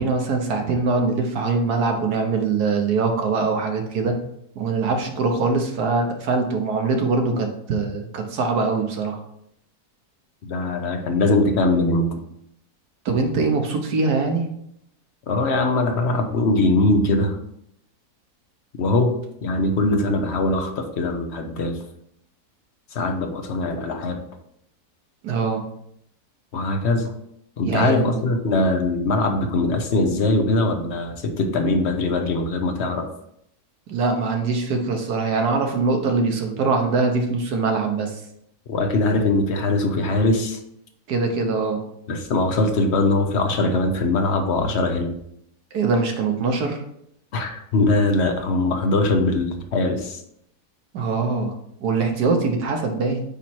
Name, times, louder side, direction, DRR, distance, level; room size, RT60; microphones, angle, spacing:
voice 1, 0.0-4.2 4.5-9.2 13.0-14.5 25.2-25.6 27.6-28.2 33.9-38.2 41.1-41.8 45.7-46.8 50.9-51.5 51.8-53.2, right 4 dB, 85° right, 4 dB, 1.6 m, -22 dB
voice 2, 10.4-12.1 15.3-17.4 18.8-19.1 19.4-21.8 22.9-24.2 26.5-27.1 27.6-33.1 38.7-40.6 42.1-45.1 47.3-50.2, left 2 dB, 50° left, 5 dB, 1.0 m, -21 dB
8.7 x 3.1 x 4.4 m, 0.73 s
omnidirectional pair, 1.7 m